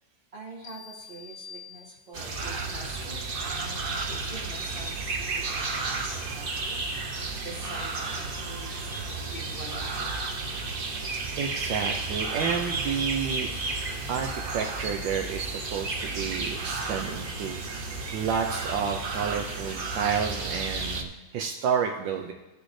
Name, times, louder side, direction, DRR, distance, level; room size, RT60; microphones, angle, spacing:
voice 1, 0.3-6.8 7.3-10.4, right 2 dB, 30° right, -4 dB, 2.1 m, -46 dB
sound 1, 0.6-2.5, left 6 dB, 60° left, 1.0 m, -47 dB
sound 2, 2.1-21.0, right 3 dB, 60° right, 0.5 m, -32 dB
voice 2, 11.4-13.5 14.1-17.6 18.1-22.3, right 6 dB, 80° right, 4 dB, 1.4 m, -30 dB
16.5 x 6.3 x 3.2 m, 1.1 s
omnidirectional pair, 2.1 m